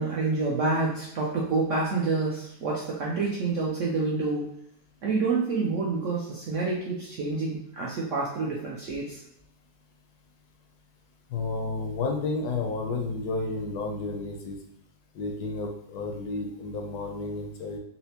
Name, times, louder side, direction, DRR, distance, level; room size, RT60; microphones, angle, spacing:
voice 1, 0.0-4.5 5.0-9.2, right 3 dB, 65° right, -4 dB, 0.7 m, -28 dB
voice 2, 11.3-14.6 15.1-17.8, left 3 dB, 75° left, 2 dB, 1.0 m, -31 dB
4.3 x 2.0 x 2.8 m, 0.74 s
omnidirectional pair, 1.8 m